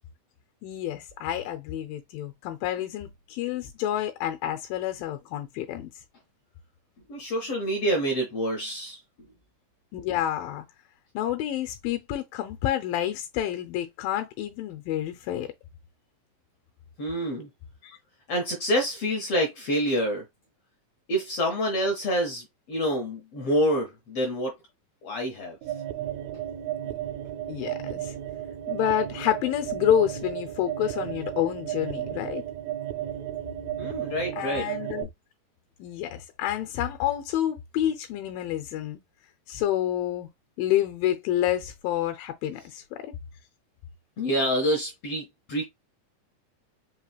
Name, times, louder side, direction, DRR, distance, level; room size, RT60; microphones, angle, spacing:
voice 1, 0.6-5.9 9.9-10.6 11.2-15.5 17.8-18.0 26.8-26.9 27.5-28.2 28.7-32.4 34.4-35.1 35.8-39.0 39.5-40.3 40.6-43.0, left 11 dB, 85° left, 2.3 m, -28 dB
voice 2, 7.1-9.0 17.0-17.5 18.3-20.2 21.1-24.5 25.0-25.6 33.8-34.7 44.2-45.6, equal, 65° left, 1.5 m, -27 dB
sound 1, 25.6-35.0, right 12 dB, 85° right, 2.4 m, -34 dB
5.4 x 3.0 x 2.3 m
omnidirectional pair, 4.0 m